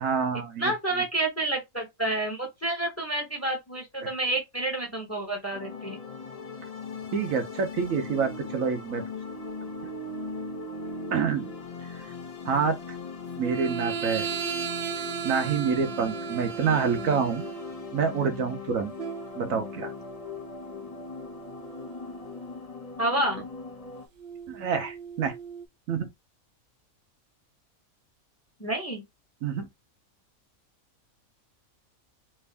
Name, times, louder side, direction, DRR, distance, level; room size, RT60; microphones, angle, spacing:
voice 1, 0.0-0.7 4.0-4.1 7.1-9.0 11.1-11.5 11.9-12.1 12.4-13.0 13.4-14.3 15.2-17.5 17.9-18.9 19.4-19.9 24.5-25.3 25.9-26.1 29.4-29.7, right 6 dB, 75° right, 1.1 m, -27 dB
voice 2, 0.6-6.0 16.6-16.8 23.0-23.5 28.6-29.0, right 2 dB, 15° left, 0.8 m, -29 dB
sound 1, 5.5-24.1, left 6 dB, 40° left, 0.5 m, -40 dB
sound 2, 8.1-8.6 9.2-11.6 13.4-18.0 19.0-22.5 24.2-25.7, right 8 dB, 55° right, 0.8 m, -37 dB
3.4 x 2.6 x 3.3 m
omnidirectional pair, 1.5 m